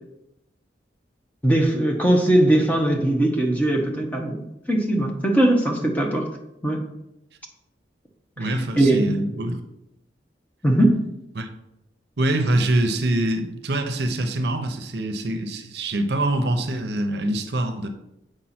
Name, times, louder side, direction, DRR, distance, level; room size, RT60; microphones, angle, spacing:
voice 1, 1.4-6.3 6.6-6.8 8.4-9.2 10.6-11.0, right 1 dB, 10° left, 1.0 m, -20 dB
voice 2, 8.4-9.6 11.3-11.5 12.2-17.9, right 1 dB, 70° right, 0.7 m, -24 dB
7.5 x 5.0 x 4.3 m
head